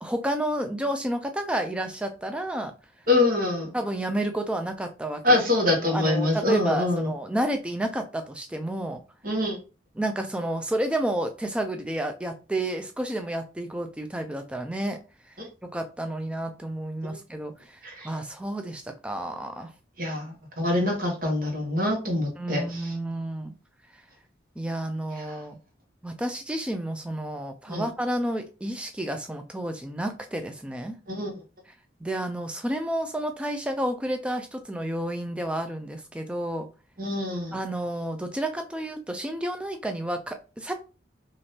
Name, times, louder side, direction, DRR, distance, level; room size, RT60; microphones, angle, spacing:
voice 1, 0.0-2.7 3.7-5.4 5.9-9.0 10.0-15.0 15.6-19.7 22.4-23.5 24.6-25.6 26.0-31.0 32.0-36.7 37.5-40.7, right 1 dB, 5° right, 5 dB, 0.3 m, -30 dB
voice 2, 3.1-3.7 5.2-7.1 9.2-9.6 15.4-15.5 17.1-17.2 17.8-18.1 20.0-22.9 25.1-25.4 27.7-27.8 31.1-31.3 37.0-37.6, left 2 dB, 45° right, 1 dB, 1.0 m, -25 dB
3.4 x 2.5 x 2.7 m, 0.33 s
head